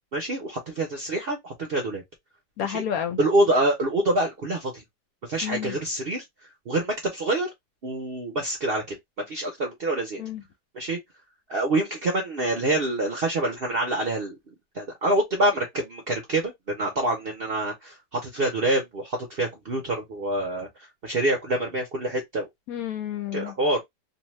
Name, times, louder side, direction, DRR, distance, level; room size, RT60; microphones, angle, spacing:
voice 1, 0.1-2.0 2.6-2.8 3.2-4.8 5.2-6.2 6.7-7.5 7.8-9.0 9.3-10.2 10.7-11.0 11.5-14.4 14.7-22.4 23.3-23.8, right 1 dB, 60° right, 0.6 m, -26 dB
voice 2, 2.6-3.2 5.4-5.8 10.2-10.4 22.7-23.5, left 9 dB, 70° left, 0.9 m, -30 dB
2.7 x 2.2 x 3.0 m
omnidirectional pair, 1.7 m